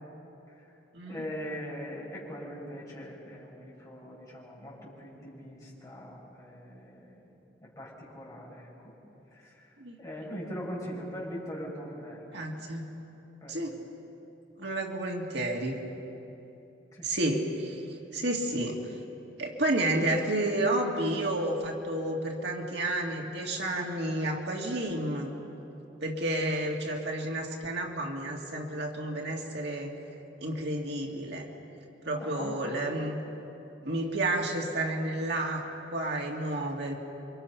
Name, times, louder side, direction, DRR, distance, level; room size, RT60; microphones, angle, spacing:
voice 1, 1.0-7.2 7.6-8.9 9.3-9.6 10.0-12.3 13.4-13.7 16.9-17.1 32.1-32.6, equal, 20° left, -5 dB, 6.8 m, -41 dB
voice 2, 12.3-12.9 13.5-13.8 14.6-15.8 17.0-17.8 18.1-18.8 19.4-25.3 26.0-29.9 30.4-31.5 32.0-33.2 33.8-35.6 35.9-36.9, right 1 dB, 65° right, 0 dB, 2.2 m, -31 dB
28.5 x 24.5 x 5.7 m, 3.0 s
head